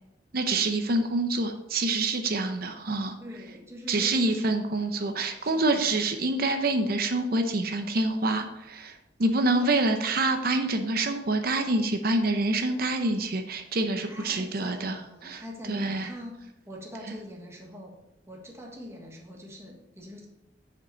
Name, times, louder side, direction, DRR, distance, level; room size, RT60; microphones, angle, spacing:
voice 1, 0.3-3.1 3.9-15.4 15.7-16.1, right 2 dB, 55° right, 6 dB, 0.7 m, -26 dB
voice 2, 3.2-4.5 5.4-6.0 9.5-9.9 14.0-16.4 16.7-17.9 18.3-20.3, left 1 dB, 15° right, -1 dB, 1.5 m, -43 dB
8.2 x 5.2 x 5.6 m, 0.87 s
head